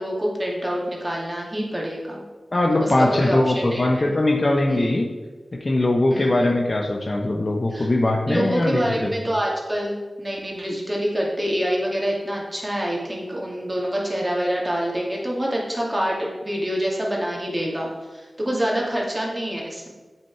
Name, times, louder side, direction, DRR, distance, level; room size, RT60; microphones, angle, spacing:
voice 1, 0.0-2.2 2.8-4.1 4.7-4.9 6.1-6.5 7.7-7.9 8.3-19.9, equal, 20° right, -3 dB, 2.4 m, -26 dB
voice 2, 2.5-5.1 5.5-9.1, left 2 dB, 45° left, 2 dB, 0.9 m, -21 dB
7.5 x 5.9 x 4.7 m, 1.3 s
cardioid pair, 45°, 0 cm